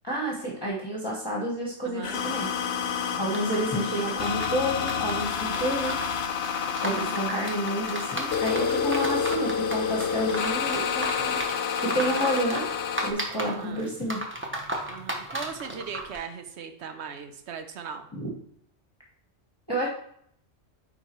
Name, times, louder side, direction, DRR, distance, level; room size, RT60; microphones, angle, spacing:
voice 1, 0.0-2.5 3.2-6.0 6.8-11.4 11.8-12.7 13.0-14.2 18.1-18.3 19.7-19.9, right 1 dB, 20° left, -4 dB, 1.2 m, -29 dB
voice 2, 1.8-2.2 3.1-3.5 6.8-7.4 11.9-12.2 13.4-13.9 14.9-18.1, right 6 dB, 65° right, 8 dB, 1.0 m, -39 dB
sound 1, 2.0-13.1, left 7 dB, 65° left, 0.8 m, -29 dB
sound 2, 3.3-16.2, right 1 dB, 10° right, 0.8 m, -35 dB
9.3 x 4.0 x 3.0 m, 0.68 s
omnidirectional pair, 1.2 m